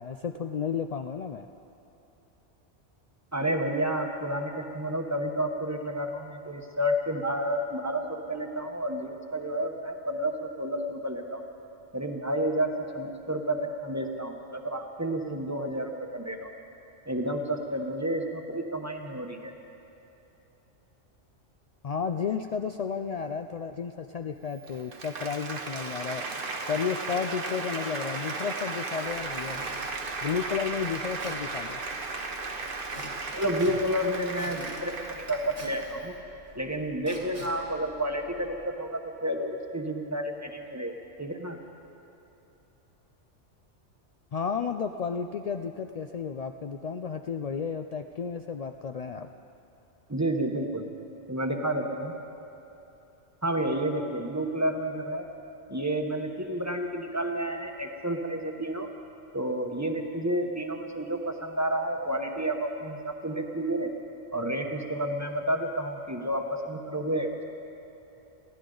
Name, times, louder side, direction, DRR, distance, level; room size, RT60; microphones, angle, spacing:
voice 1, 0.0-1.5 21.8-26.2 26.7-29.6 30.2-31.8 44.3-49.3, left 6 dB, 75° left, 5 dB, 0.3 m, -32 dB
voice 2, 3.3-11.4 11.9-16.5 17.1-19.5 33.3-36.1 36.5-41.6 50.1-50.9 51.3-52.1 53.4-55.2 55.7-58.9 59.3-63.9 64.3-67.4, right 1 dB, 15° right, 3 dB, 1.0 m, -30 dB
Applause, 24.5-36.1, right 3 dB, 50° right, 1.1 m, -36 dB
Squeak / Wood, 29.0-38.7, right 1 dB, 70° right, 3.0 m, -47 dB
22.5 x 16.0 x 3.9 m, 3.0 s
omnidirectional pair, 1.2 m